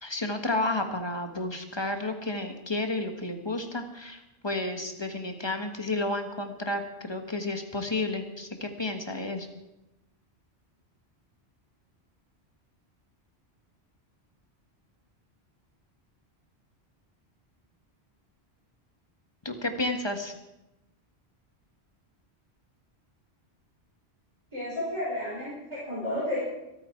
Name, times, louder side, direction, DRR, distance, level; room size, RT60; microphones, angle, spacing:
voice 1, 0.0-9.5 19.4-20.3, left 2 dB, 25° left, 5 dB, 1.5 m, -31 dB
voice 2, 24.5-26.4, left 1 dB, 30° right, -7 dB, 4.7 m, -32 dB
24.5 x 9.2 x 4.6 m, 0.94 s
omnidirectional pair, 1.1 m